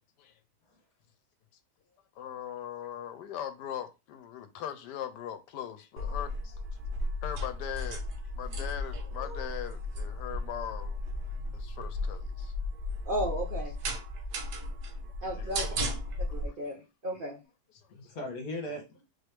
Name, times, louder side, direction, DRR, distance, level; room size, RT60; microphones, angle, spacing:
voice 1, 2.2-6.6 7.2-8.1 8.3-11.0 11.5-12.5 15.4-15.7 16.5-16.6 17.7-17.8, left 9 dB, 80° left, 1.2 m, -40 dB
sound 1, 6.0-16.5, left 1 dB, 80° right, 1.5 m, -35 dB
voice 2, 13.1-13.7 15.2-15.8 16.3-17.4, right 1 dB, 45° right, 0.7 m, -34 dB
voice 3, 14.6-14.9 15.2-15.3 16.3-16.4 17.1-17.2 17.9-19.0, left 1 dB, 60° left, 1.5 m, -40 dB
4.2 x 3.1 x 3.3 m
omnidirectional pair, 1.8 m